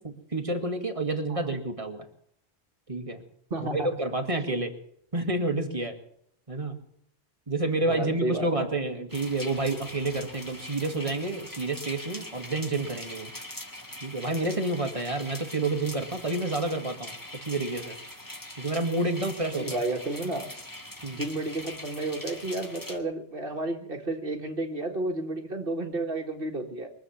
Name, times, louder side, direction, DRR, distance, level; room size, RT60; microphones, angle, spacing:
voice 1, 0.0-2.1 2.9-3.2 3.7-4.7 5.1-6.0 6.5-6.8 7.5-13.3 14.0-17.2 17.4-18.0 18.6-19.8 21.0-21.2, right 2 dB, 30° right, 5 dB, 2.0 m, -29 dB
voice 2, 3.5-3.9 7.8-8.7 19.5-20.5 21.1-26.9, right 2 dB, 55° right, 5 dB, 1.9 m, -32 dB
sound 1, 9.1-23.0, left 1 dB, 20° left, 1.7 m, -42 dB
23.5 x 7.8 x 7.1 m, 0.72 s
omnidirectional pair, 1.1 m